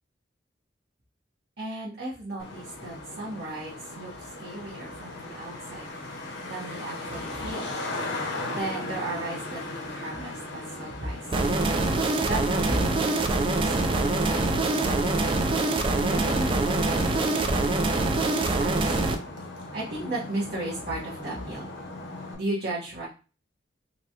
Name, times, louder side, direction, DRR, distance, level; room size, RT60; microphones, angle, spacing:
voice 1, 1.6-5.9 6.5-7.8 8.5-11.5 12.2-15.6 15.9-18.9 19.7-21.7 22.3-23.1, right 1 dB, 60° right, -8 dB, 1.0 m, -36 dB
Traffic noise roadway noise, 2.4-22.4, left 2 dB, 65° left, 0.8 m, -38 dB
sound 1, 11.3-19.1, right 2 dB, 30° right, 0.3 m, -24 dB
4.2 x 2.2 x 2.8 m, 0.34 s
head